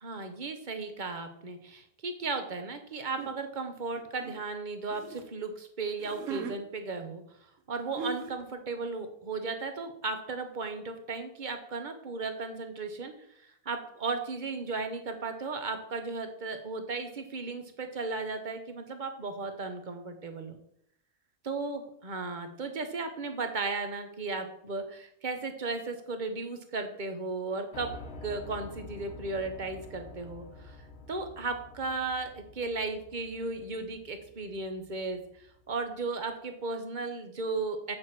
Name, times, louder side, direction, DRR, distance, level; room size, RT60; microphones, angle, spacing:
voice 1, 0.0-7.2 7.7-13.1 13.4-20.6 21.4-27.9 28.2-37.9, right 3 dB, 35° right, 7 dB, 1.0 m, -35 dB
sound 1, 3.2-3.4 4.0-5.2 5.9-6.6 7.6-7.7 7.9-8.4, right 6 dB, 65° right, 1.2 m, -38 dB
Piano, 27.7-35.7, left 3 dB, 50° left, 1.1 m, -48 dB
8.0 x 4.7 x 5.9 m, 0.71 s
omnidirectional pair, 1.5 m